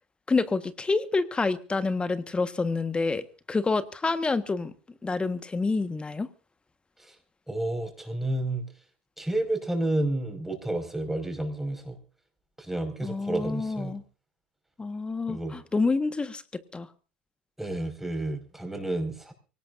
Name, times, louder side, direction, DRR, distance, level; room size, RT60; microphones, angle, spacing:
voice 1, 0.3-4.7 5.0-6.3 13.0-14.0 14.8-16.4 16.7-16.9, left 3 dB, 20° left, 12 dB, 1.5 m, -28 dB
voice 2, 7.5-8.7 9.2-12.0 12.6-14.0 15.3-15.5 17.6-19.3, right 1 dB, 5° right, 5 dB, 5.4 m, -30 dB
24.5 x 18.5 x 2.7 m, 0.36 s
hypercardioid pair, 75°, 6 cm